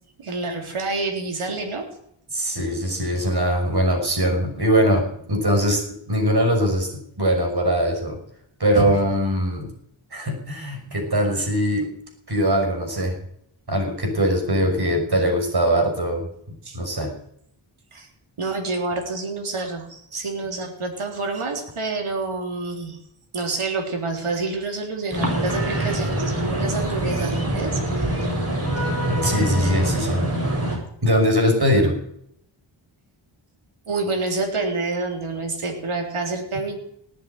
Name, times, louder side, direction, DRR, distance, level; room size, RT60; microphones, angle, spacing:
voice 1, 0.2-1.9 16.6-16.8 17.9-18.1 18.4-23.0 23.3-28.4 33.9-36.8, right 3 dB, 85° right, 2 dB, 3.8 m, -28 dB
voice 2, 2.3-5.0 5.3-6.9 7.2-8.2 8.6-9.7 10.1-11.9 12.3-13.1 13.7-16.3 16.7-17.1 29.1-30.2 31.0-32.0, equal, 50° right, 3 dB, 6.3 m, -21 dB
sound 1, 25.1-30.8, right 1 dB, 30° right, 7.3 m, -24 dB
18.5 x 8.3 x 9.4 m, 0.71 s
cardioid pair, 55°, 49 cm